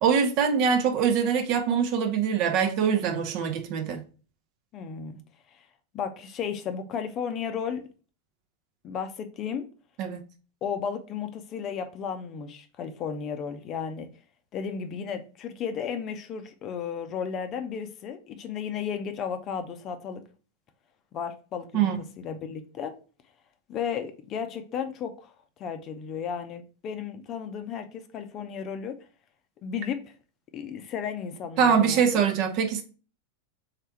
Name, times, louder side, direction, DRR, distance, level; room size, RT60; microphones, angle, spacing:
voice 1, 0.0-4.0 10.0-10.2 21.7-22.0 31.6-32.8, right 7 dB, 40° right, 0.7 m, -23 dB
voice 2, 4.7-5.2 5.5-5.6 5.9-7.8 8.8-9.7 10.6-14.1 14.5-20.2 21.1-21.9 22.2-23.0 23.7-25.3 25.6-29.0 29.6-30.0 30.5-32.2, left 7 dB, 35° left, 0.6 m, -34 dB
3.7 x 3.4 x 4.3 m
figure-of-eight pair, 90°, 0 cm